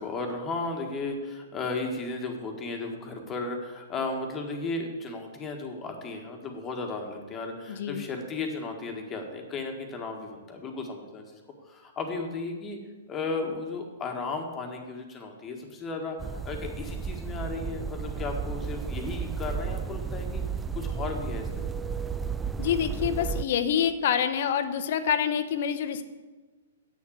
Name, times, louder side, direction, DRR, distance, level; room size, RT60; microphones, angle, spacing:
voice 1, 0.0-12.8 13.1-20.4 20.7-21.7, left 3 dB, 20° left, 2 dB, 1.6 m, -35 dB
voice 2, 7.7-8.0 22.6-26.0, left 8 dB, 45° left, 11 dB, 0.8 m, -26 dB
sound 1, 16.2-23.4, right 6 dB, 10° right, 0.3 m, -33 dB
8.0 x 7.2 x 8.5 m, 1.3 s
figure-of-eight pair, 115°, 0 cm